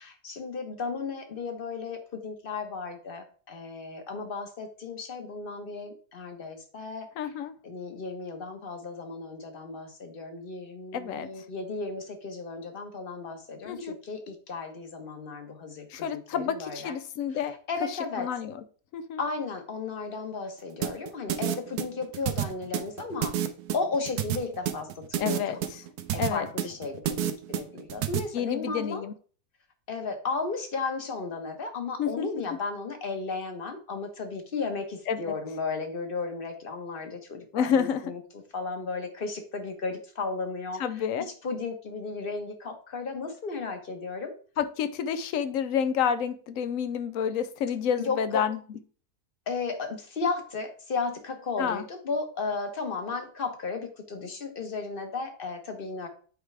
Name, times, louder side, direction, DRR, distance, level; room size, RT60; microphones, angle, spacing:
voice 1, 0.0-7.1 7.6-16.9 17.7-18.3 19.2-23.3 23.7-25.4 26.1-29.0 29.9-38.2 38.5-40.8 41.4-44.3 48.0-48.4 49.5-56.1, left 4 dB, 40° left, 1.2 m, -34 dB
voice 2, 7.2-7.5 10.9-11.5 13.6-14.0 15.9-17.6 17.9-18.6 18.9-19.2 25.2-25.8 26.2-26.5 28.3-29.1 32.0-32.3 35.1-35.3 37.5-38.0 40.8-41.3 44.6-48.6 51.6-51.8, left 8 dB, 70° left, 0.9 m, -29 dB
sound 1, 20.8-28.2, right 11 dB, 90° right, 1.2 m, -29 dB
8.2 x 4.6 x 3.3 m
omnidirectional pair, 1.6 m